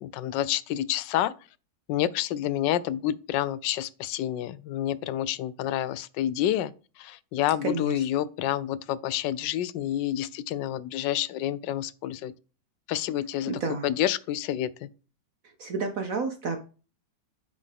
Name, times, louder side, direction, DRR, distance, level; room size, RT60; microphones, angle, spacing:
voice 1, 0.0-1.3 1.9-6.7 7.0-12.3 12.9-14.9, left 12 dB, 80° left, 1.2 m, -28 dB
voice 2, 7.6-8.0 13.5-13.9 15.4-16.6, right 4 dB, 55° right, 1.1 m, -31 dB
9.7 x 4.9 x 3.4 m
omnidirectional pair, 2.0 m